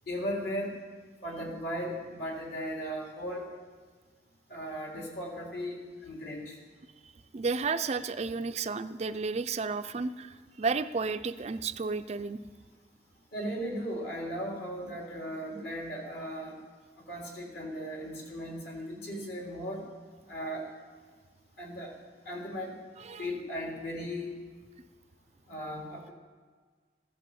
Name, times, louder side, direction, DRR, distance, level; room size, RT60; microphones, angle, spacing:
voice 1, 0.1-0.8 1.2-3.5 4.5-6.6 13.3-16.6 17.0-19.9 20.3-20.7 21.6-21.9 22.3-22.8 23.2-24.3 25.5-26.1, equal, 60° left, -1 dB, 3.9 m, -37 dB
voice 2, 7.3-12.4 23.0-23.3, right 4 dB, 35° right, 9 dB, 0.5 m, -32 dB
15.0 x 11.5 x 7.9 m, 1.5 s
head